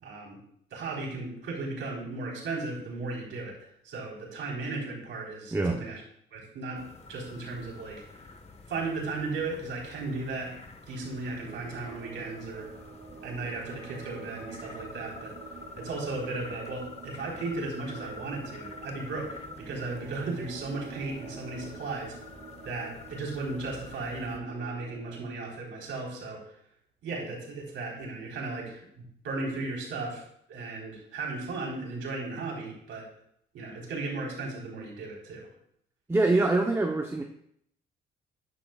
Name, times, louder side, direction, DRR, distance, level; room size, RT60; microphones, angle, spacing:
voice 1, 0.0-0.4 0.7-6.0 6.3-6.8 7.1-8.0 8.7-10.5 10.9-12.7 13.2-15.4 15.8-22.2 22.6-26.4 27.0-33.0 33.5-35.5, right 3 dB, 75° right, -2 dB, 4.3 m, -36 dB
sound 1, 6.7-24.4, left 4 dB, 35° left, 1.5 m, -47 dB
sound 2, 11.4-25.3, right 6 dB, 50° right, 1.1 m, -48 dB
voice 2, 36.1-37.2, right 2 dB, 15° right, 3 dB, 1.0 m, -24 dB
13.5 x 9.8 x 2.5 m, 0.71 s
cardioid pair, 90°, 20 cm